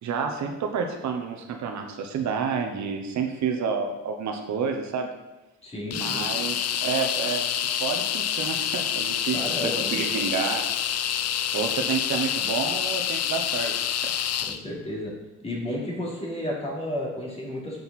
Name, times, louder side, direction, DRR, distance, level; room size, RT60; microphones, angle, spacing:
voice 1, 0.0-5.1 5.9-7.5 7.8-10.7 11.5-14.1, right 5 dB, 70° right, 4 dB, 1.1 m, -29 dB
voice 2, 5.6-6.2 9.3-9.9 10.1-10.2 14.4-15.1 15.4-17.8, left 1 dB, 20° left, -4 dB, 3.0 m, -32 dB
sound 1, 5.9-14.6, left 9 dB, 55° left, 0.5 m, -27 dB
7.1 x 6.6 x 4.2 m, 1.0 s
cardioid pair, 90°, 30 cm